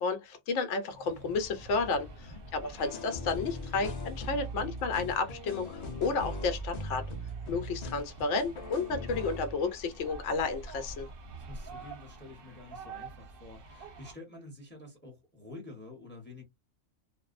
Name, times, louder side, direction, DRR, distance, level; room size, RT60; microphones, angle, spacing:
voice 1, 0.0-7.1 7.5-11.1, left 4 dB, 70° left, 0.9 m, -32 dB
sound 1, 0.9-14.1, right 2 dB, 55° right, 0.8 m, -47 dB
sound 2, 2.8-9.5, left 1 dB, 50° left, 0.5 m, -39 dB
voice 2, 11.3-16.4, left 2 dB, 10° left, 0.7 m, -49 dB
2.5 x 2.1 x 2.4 m
omnidirectional pair, 1.3 m